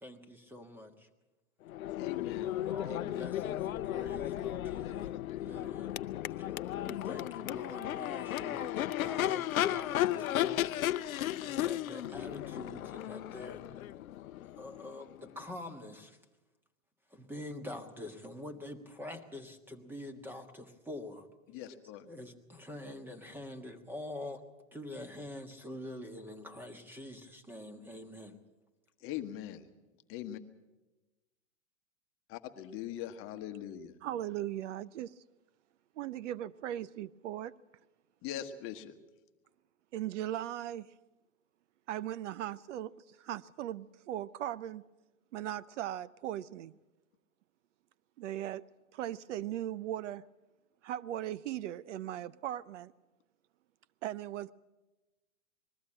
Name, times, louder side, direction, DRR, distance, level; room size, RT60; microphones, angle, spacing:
voice 1, 0.0-1.1 2.3-5.1 5.4-6.0 6.4-13.9 14.6-16.2 17.1-21.3 22.0-24.4 24.7-28.4, left 1 dB, 5° right, 1.5 m, -46 dB
Crowd / Race car auto racing / Accelerating revving vroom, 1.7-15.5, left 13 dB, 85° left, 0.6 m, -35 dB
voice 2, 2.0-2.5 2.8-3.3 21.5-22.0 29.0-29.6 30.1-30.4 32.3-33.9 38.2-38.9, left 11 dB, 30° left, 1.3 m, -41 dB
voice 3, 34.0-35.1 36.0-37.5 39.9-40.9 41.9-44.8 45.3-46.7 48.2-48.6 48.9-50.2 50.8-52.9 54.0-54.5, right 12 dB, 60° right, 0.6 m, -38 dB
21.0 x 14.0 x 8.8 m
hypercardioid pair, 135°, 41 cm